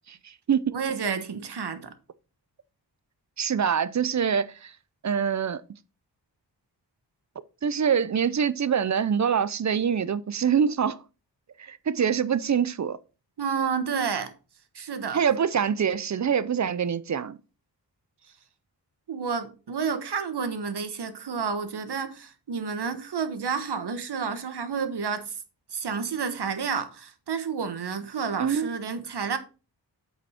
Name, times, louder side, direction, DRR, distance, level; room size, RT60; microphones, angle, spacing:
voice 1, 0.1-0.8 3.4-4.7 5.0-5.6 7.6-11.0 11.6-13.0 15.1-17.4 28.4-28.7, right 7 dB, 40° right, 0.5 m, -25 dB
voice 2, 0.7-1.9 13.4-14.3 14.7-15.2 19.1-25.4 25.7-29.4, right 6 dB, 65° right, 1.2 m, -30 dB
8.1 x 5.2 x 4.3 m
wide cardioid pair, 120°, 43 cm